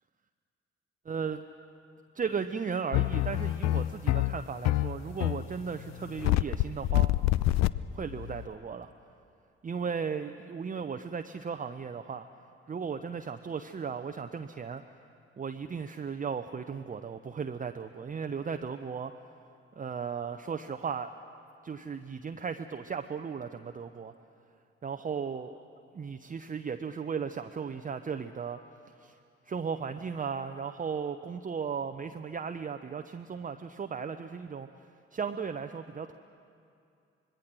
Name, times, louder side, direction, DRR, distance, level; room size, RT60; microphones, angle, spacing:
voice 1, 1.0-1.4 2.1-7.3 7.9-8.9 9.6-12.3 12.7-14.8 15.4-19.3 19.8-21.1 21.6-24.1 24.8-25.6 25.9-28.6 28.9-29.2 29.4-34.9 35.1-36.1, right 6 dB, 25° right, 7 dB, 0.8 m, -36 dB
sound 1, 2.9-8.5, left 16 dB, 55° left, 0.5 m, -27 dB
26.0 x 20.5 x 6.3 m, 2.5 s
figure-of-eight pair, 40°, 32 cm